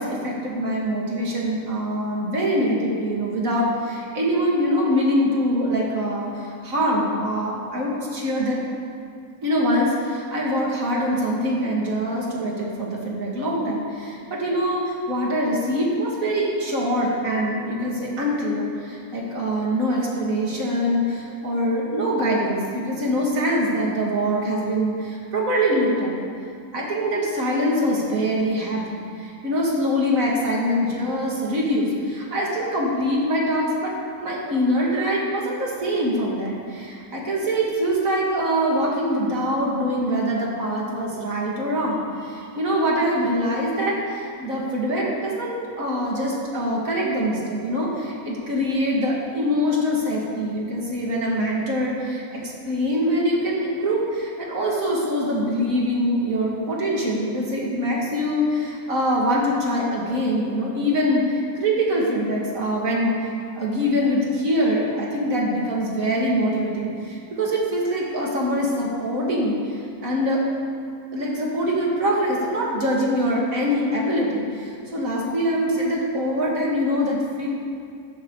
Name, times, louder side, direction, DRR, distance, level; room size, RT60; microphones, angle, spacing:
voice 1, 0.0-8.6 9.4-26.2 26.7-33.9 34.2-70.4 71.1-77.5, equal, 60° right, -3 dB, 2.8 m, -24 dB
15.5 x 13.5 x 4.0 m, 2.4 s
omnidirectional pair, 1.6 m